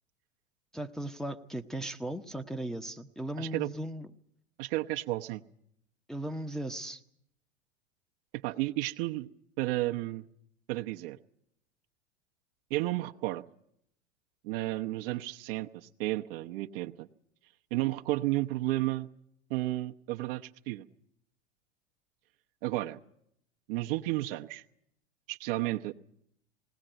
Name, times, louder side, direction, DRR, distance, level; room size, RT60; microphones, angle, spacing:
voice 1, 0.7-4.1 6.1-7.0, right 1 dB, ahead, 3 dB, 0.9 m, -37 dB
voice 2, 3.4-3.7 4.6-5.4 8.4-9.3 9.6-10.3 10.7-11.2 12.7-13.4 14.4-17.1 17.7-19.1 19.5-20.8 22.6-23.0 23.7-24.6 25.3-25.9, right 18 dB, 55° right, 4 dB, 1.0 m, -32 dB
20.0 x 18.0 x 9.0 m, 0.74 s
hypercardioid pair, 95°, 33 cm